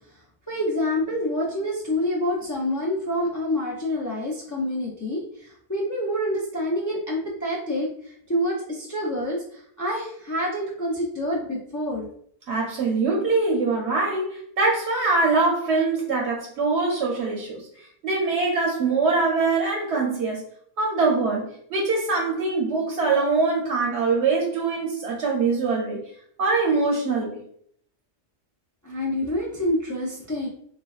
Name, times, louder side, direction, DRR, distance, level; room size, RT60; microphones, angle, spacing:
voice 1, 0.5-12.1 28.8-30.5, left 1 dB, 25° left, -4 dB, 0.4 m, -27 dB
voice 2, 12.5-17.6 18.0-20.4 20.8-26.0 26.4-27.4, right 3 dB, 85° right, -1 dB, 0.9 m, -23 dB
4.1 x 2.2 x 2.3 m, 0.64 s
omnidirectional pair, 1.1 m